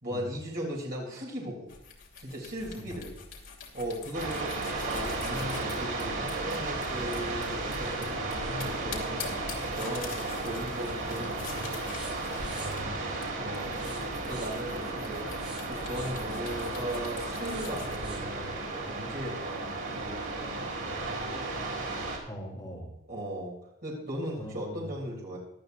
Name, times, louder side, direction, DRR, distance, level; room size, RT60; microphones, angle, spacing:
voice 1, 0.0-1.7 2.2-3.1 3.7-11.8 13.4-15.2 15.7-20.6 23.1-23.5 23.8-25.4, equal, 45° right, -3 dB, 3.5 m, -38 dB
sound 1, 1.7-18.0, left 5 dB, 65° left, 2.8 m, -45 dB
sound 2, 4.1-22.2, right 2 dB, 85° right, 3.9 m, -34 dB
sound 3, 7.0-10.4 10.7-11.1 11.4-13.1 13.6-14.7 15.3-16.3 17.4-18.4 18.9-19.0 19.4-19.5, right 1 dB, 25° right, 4.5 m, -47 dB
voice 2, 12.6-13.0 22.3-22.9 24.4-24.9, equal, 20° left, -2 dB, 3.4 m, -41 dB
17.5 x 12.0 x 2.7 m, 0.85 s
head